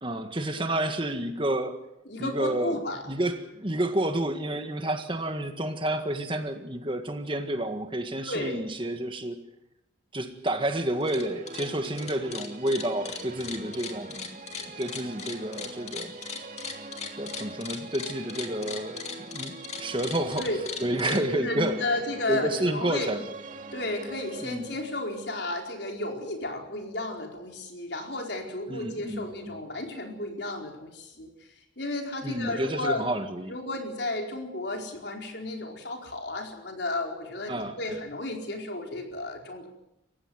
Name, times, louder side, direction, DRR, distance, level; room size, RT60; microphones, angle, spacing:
voice 1, 0.0-1.9 2.2-2.8 3.1-9.4 10.1-14.4 14.8-16.5 17.2-19.0 19.3-20.5 20.8-21.8 22.3-23.2 24.4-24.7 28.7-29.6 32.2-33.5 37.5-38.0, right 1 dB, 25° right, 7 dB, 1.7 m, -30 dB
voice 2, 2.1-3.0 8.2-8.6 19.7-19.8 20.4-20.6 21.1-23.1 23.7-33.1 33.5-39.7, left 2 dB, 60° left, 2 dB, 4.5 m, -33 dB
sound 1, 10.9-11.2 11.5-21.2, left 6 dB, 35° left, 2.7 m, -38 dB
sound 2, 10.9-27.0, right 2 dB, 45° right, 1.9 m, -44 dB
29.0 x 15.5 x 7.9 m, 0.85 s
head